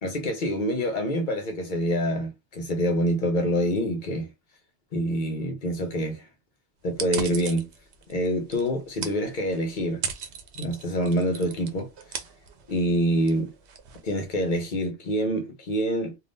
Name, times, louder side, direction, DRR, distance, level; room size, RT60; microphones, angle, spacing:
voice 1, 0.0-4.3 4.9-6.3 6.8-7.7 8.1-10.0 10.6-11.9 12.7-13.5 14.0-16.1, equal, 50° left, 0.9 m, -26 dB
sound 1, 6.9-14.6, right 7 dB, 90° right, 0.9 m, -39 dB
3.5 x 2.4 x 2.6 m
omnidirectional pair, 1.1 m